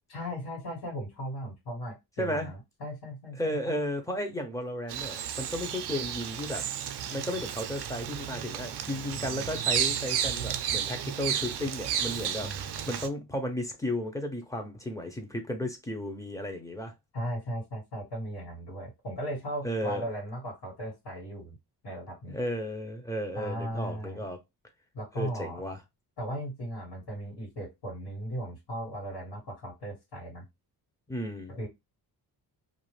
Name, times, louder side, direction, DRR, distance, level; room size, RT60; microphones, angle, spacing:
voice 1, 0.1-3.6 12.4-12.9 17.1-21.6 21.8-22.4 23.3-24.2 24.9-25.6 26.2-30.4 31.5-31.7, equal, 90° left, 1.7 m, -37 dB
voice 2, 2.2-2.5 3.3-6.7 7.0-16.9 19.6-20.0 22.3-24.4 25.2-25.8 31.1-31.5, left 1 dB, 10° left, 0.6 m, -34 dB
Bird vocalization bird call bird song, 4.9-13.1, right 9 dB, 85° right, 0.5 m, -32 dB
2.5 x 2.4 x 3.1 m
wide cardioid pair, 140°, 39 cm